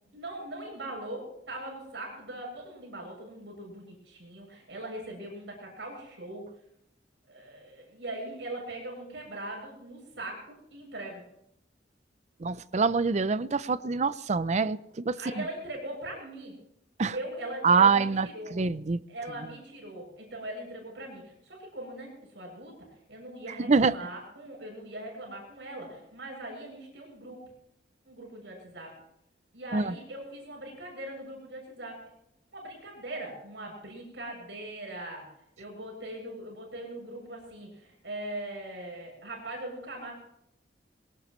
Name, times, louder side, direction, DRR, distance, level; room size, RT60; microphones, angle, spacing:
voice 1, 0.1-6.5 7.3-11.2 15.2-16.6 17.1-18.5 19.1-27.4 28.0-28.9 29.5-32.0 32.5-35.3 35.6-40.1, right 1 dB, 80° right, 7.7 m, -40 dB
voice 2, 12.4-15.2 17.0-17.1 17.6-19.0 23.7-23.9 29.7-29.9, right 4 dB, 40° right, 0.5 m, -25 dB
22.5 x 18.5 x 3.2 m
head